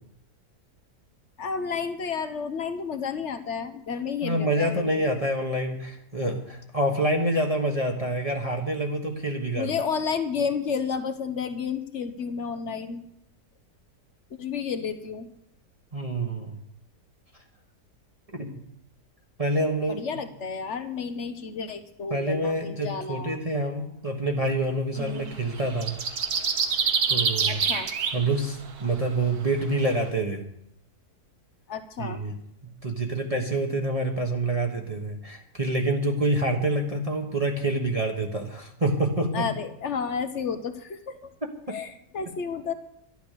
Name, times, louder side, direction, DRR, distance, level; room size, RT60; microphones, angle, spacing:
voice 1, 1.4-5.2 9.5-13.0 14.3-15.3 19.9-23.4 25.0-25.3 27.5-27.9 31.7-32.2 39.3-41.3 41.7-42.7, left 6 dB, 50° left, 10 dB, 1.2 m, -31 dB
voice 2, 4.2-9.7 15.9-16.6 18.3-18.5 19.4-20.0 22.1-26.0 27.1-27.6 28.1-30.5 32.0-32.3 32.6-39.5 41.7-41.8, right 1 dB, 20° right, 1 dB, 1.4 m, -27 dB
sound 1, 25.1-25.3 25.6-28.3 28.7-28.8, right 6 dB, 65° right, 1.8 m, -26 dB
12.0 x 11.5 x 6.7 m, 0.74 s
omnidirectional pair, 1.8 m